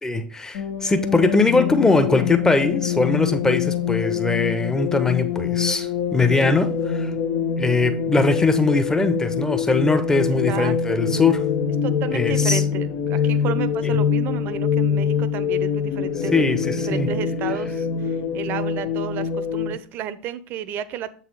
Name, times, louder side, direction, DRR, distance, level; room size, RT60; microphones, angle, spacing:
voice 1, 0.0-7.1 7.6-11.4 12.1-12.6 13.8-13.9 16.3-17.1, left 3 dB, 10° left, 0.9 m, -21 dB
sound 1, 0.5-19.7, left 7 dB, 60° left, 1.0 m, -24 dB
voice 2, 10.5-11.0 11.8-16.5 16.8-21.1, right 9 dB, 45° right, 0.7 m, -32 dB
7.5 x 4.2 x 5.5 m
figure-of-eight pair, 80°, 5 cm